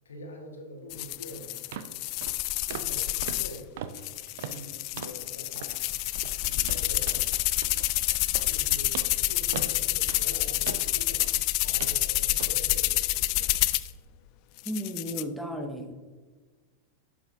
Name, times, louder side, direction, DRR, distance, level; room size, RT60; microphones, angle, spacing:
voice 1, 0.0-1.5 2.7-3.7 4.3-5.8 6.4-7.3 8.4-11.3 11.6-13.5, left 1 dB, 70° left, 1 dB, 1.7 m, -44 dB
sound 1, 0.9-3.6 3.9-13.9 14.6-15.2, left 19 dB, 45° left, 0.3 m, -28 dB
sound 2, 1.1-1.2 1.7-1.9 2.2-2.4 2.7-3.0 3.2-5.3 5.6-5.8 6.1-11.4 11.8-12.0 12.4-12.6 13.0-13.2, right 8 dB, 55° right, 0.5 m, -41 dB
voice 2, 14.6-15.9, equal, ahead, 4 dB, 0.9 m, -34 dB
11.5 x 6.0 x 2.7 m, 1.4 s
figure-of-eight pair, 90°, 0 cm